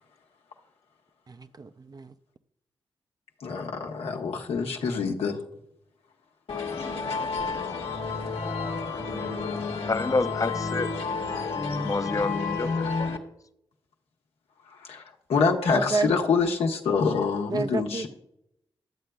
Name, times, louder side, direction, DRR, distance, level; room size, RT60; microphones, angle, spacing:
voice 1, 1.3-2.1 15.7-16.1 17.5-18.1, right 4 dB, 40° right, 0.5 m, -30 dB
voice 2, 3.4-5.4 14.7-15.0 15.3-18.1, left 5 dB, 85° left, 1.0 m, -26 dB
sound 1, 6.5-13.2, left 4 dB, 65° left, 1.1 m, -30 dB
voice 3, 9.8-10.9 11.7-13.1, left 3 dB, 35° left, 0.6 m, -28 dB
11.0 x 7.6 x 2.3 m
supercardioid pair, 45°, 10 cm